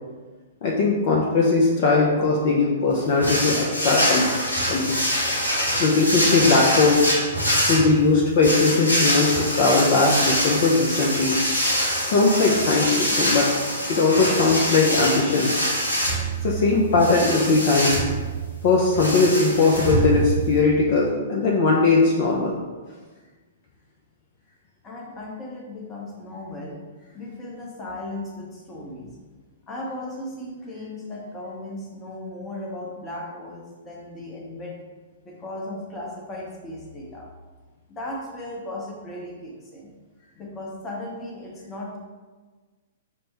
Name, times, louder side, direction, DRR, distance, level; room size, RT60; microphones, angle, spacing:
voice 1, 0.6-4.3 4.7-5.1 5.8-7.0 7.7-11.4 12.1-13.5 13.9-15.5 16.4-18.0 18.6-22.6, left 3 dB, 45° left, -2 dB, 0.4 m, -19 dB
sound 1, 3.2-20.6, equal, 80° left, 0.8 m, -25 dB
voice 2, 24.8-26.8 27.1-29.1 29.7-34.8 35.2-37.3 37.9-39.9 40.4-42.0, left 1 dB, 20° left, -3 dB, 0.8 m, -36 dB
5.2 x 2.1 x 2.9 m, 1.4 s
figure-of-eight pair, 110°, 0 cm